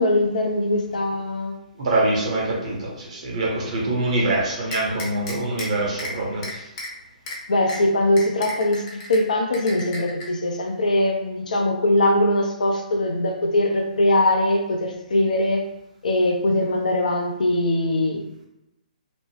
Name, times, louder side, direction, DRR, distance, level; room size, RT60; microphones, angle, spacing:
voice 1, 0.0-1.5 7.5-8.8 9.1-15.6 16.0-18.2, left 1 dB, 60° left, 3 dB, 0.6 m, -21 dB
voice 2, 1.8-6.6, right 2 dB, 50° right, -3 dB, 1.1 m, -24 dB
sound 1, 4.7-5.7 6.0-6.1 6.4-6.9 7.3-7.4 7.7-7.8 8.2-9.2 9.5-10.2, left 1 dB, 35° left, 0.9 m, -33 dB
3.0 x 2.1 x 3.2 m, 0.91 s
figure-of-eight pair, 130°, 5 cm